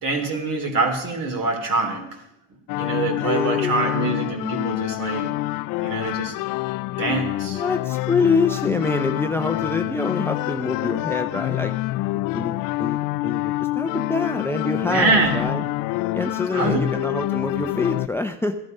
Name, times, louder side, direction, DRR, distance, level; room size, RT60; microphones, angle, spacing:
voice 1, 0.0-2.0 2.8-5.4 5.8-6.3 7.0-7.6 14.9-15.6 16.5-17.0, right 3 dB, 50° right, 4 dB, 3.6 m, -24 dB
sound 1, 2.7-18.1, left 19 dB, 50° left, 0.4 m, -27 dB
voice 2, 3.2-4.2 7.5-11.7 12.3-15.6 16.1-18.6, left 3 dB, 5° left, 7 dB, 0.6 m, -26 dB
15.0 x 11.0 x 5.4 m, 0.89 s
supercardioid pair, 110°, 43 cm